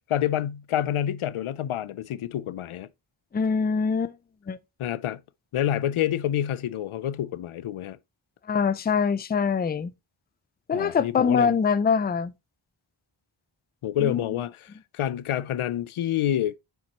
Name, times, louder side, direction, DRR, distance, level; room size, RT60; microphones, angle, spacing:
voice 1, 0.1-2.9 4.8-5.2 5.5-8.0 10.7-11.5 13.8-16.6, left 11 dB, 90° left, 0.5 m, -28 dB
voice 2, 3.3-4.1 4.5-4.6 8.5-9.9 10.7-12.3 14.0-14.2, left 6 dB, 20° left, 0.4 m, -24 dB
7.3 x 5.9 x 2.9 m
wide cardioid pair, 110°, 48 cm